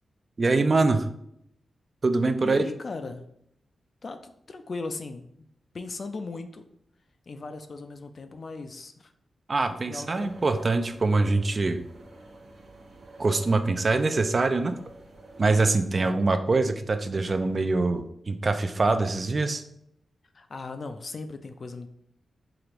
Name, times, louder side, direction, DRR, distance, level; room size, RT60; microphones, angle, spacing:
voice 1, 0.4-1.1 2.0-2.6 9.5-11.8 13.2-14.8 15.4-19.6, right 3 dB, 40° right, 8 dB, 0.3 m, -24 dB
voice 2, 2.4-3.3 4.0-5.5 5.7-6.6 7.3-9.1 9.9-10.7 15.9-16.2 20.3-21.9, left 3 dB, 50° left, 8 dB, 0.4 m, -38 dB
sound 1, 10.2-15.8, right 2 dB, 75° right, 0.9 m, -48 dB
4.8 x 2.5 x 3.0 m, 0.73 s
cardioid pair, 90°, 0 cm